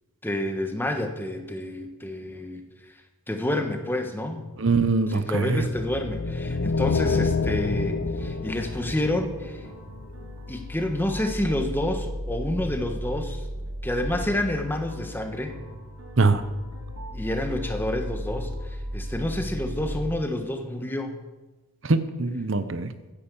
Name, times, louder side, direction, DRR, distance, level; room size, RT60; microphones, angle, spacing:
voice 1, 0.2-2.6 3.3-4.4 5.1-9.6 10.5-13.4 13.8-15.5 17.1-21.2 22.6-22.7, left 1 dB, 10° left, 5 dB, 1.4 m, -29 dB
voice 2, 4.6-5.7 16.2-16.4 21.8-22.9, right 3 dB, 60° right, 12 dB, 0.8 m, -23 dB
sound 1, 5.6-10.0, left 4 dB, 60° left, 0.7 m, -27 dB
sound 2, 8.2-19.9, equal, 75° right, 3.6 m, -36 dB
15.5 x 10.0 x 7.1 m, 1.1 s
head